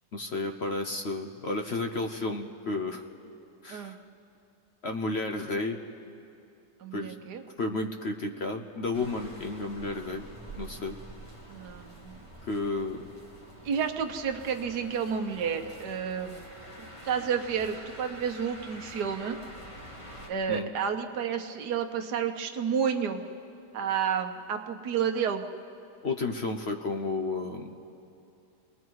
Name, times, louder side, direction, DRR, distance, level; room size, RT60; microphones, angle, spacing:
voice 1, 0.1-3.0 3.6-4.0 4.8-5.8 6.9-7.2 7.6-10.3 10.6-11.0 12.4-13.0 20.5-20.7 26.0-27.7, left 2 dB, 50° left, 5 dB, 0.9 m, -32 dB
voice 2, 6.8-7.4 11.5-12.3 13.6-16.4 17.0-19.4 20.3-23.2 23.7-25.4, right 7 dB, 80° right, 5 dB, 1.6 m, -30 dB
sound 1, 8.9-20.3, right 1 dB, 20° left, 1.8 m, -47 dB
29.0 x 21.0 x 4.7 m, 2.6 s
omnidirectional pair, 1.8 m